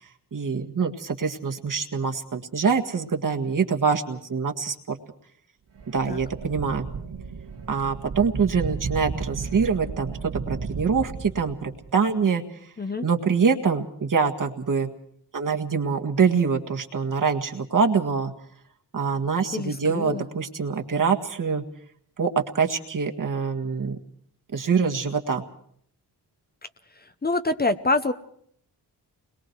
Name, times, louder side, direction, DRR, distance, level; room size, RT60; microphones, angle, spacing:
voice 1, 0.3-5.0 5.9-6.9 7.7-10.2 10.5-12.4 13.0-14.9 15.3-18.3 18.9-21.6 22.2-24.0 24.5-25.4, right 5 dB, 50° right, 3 dB, 1.8 m, -24 dB
sound 1, 5.7-11.9, right 5 dB, 75° right, 2.7 m, -34 dB
voice 2, 19.5-20.2 27.0-28.1, left 2 dB, 25° left, 9 dB, 0.8 m, -26 dB
30.0 x 21.5 x 4.6 m, 0.65 s
wide cardioid pair, 140°, 39 cm